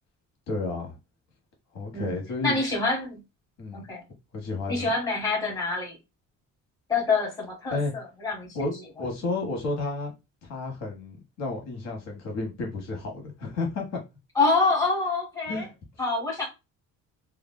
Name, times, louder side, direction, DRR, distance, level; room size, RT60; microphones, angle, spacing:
voice 1, 0.5-1.0 1.7-2.6 3.6-3.8 4.3-4.9 7.7-7.9 8.5-10.1 10.4-14.0 15.5-15.7, left 3 dB, 55° left, 1.3 m, -31 dB
voice 2, 2.4-3.2 3.7-4.0 4.7-6.0 6.9-8.5 14.3-15.6 16.0-16.4, left 3 dB, 10° left, 1.4 m, -26 dB
3.2 x 2.2 x 2.2 m
cardioid pair, 165°, 31 cm